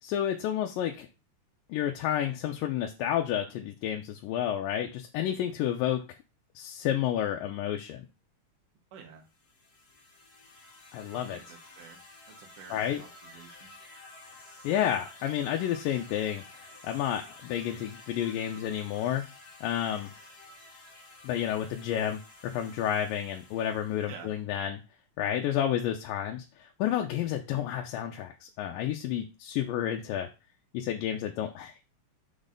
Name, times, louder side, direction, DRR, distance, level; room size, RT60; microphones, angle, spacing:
voice 1, 0.0-1.1 1.7-6.0 6.6-8.1 10.9-11.4 12.7-13.0 14.6-16.4 16.8-19.3 19.6-20.1 21.2-24.8 25.2-30.3 30.7-31.8, left 10 dB, 85° left, 3 dB, 2.4 m, -30 dB
voice 2, 8.9-9.3 11.1-12.0 12.3-13.7 24.1-24.3, right 7 dB, 70° right, 2 dB, 2.8 m, -49 dB
sound 1, 9.3-24.4, left 2 dB, 45° left, 1.3 m, -52 dB
6.4 x 4.1 x 5.1 m, 0.29 s
omnidirectional pair, 3.9 m